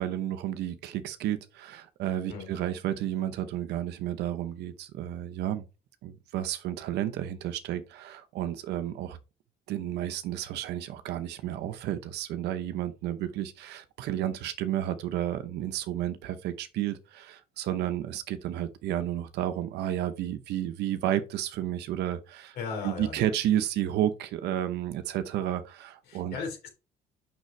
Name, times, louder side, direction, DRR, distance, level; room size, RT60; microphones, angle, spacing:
voice 1, 0.0-5.7 6.0-9.2 9.7-22.6 22.8-26.4, right 11 dB, 80° right, 0.9 m, -31 dB
voice 2, 22.6-23.3 26.1-26.7, left 5 dB, 75° left, 3.2 m, -36 dB
6.5 x 6.2 x 3.3 m
cardioid pair, 110°, 17 cm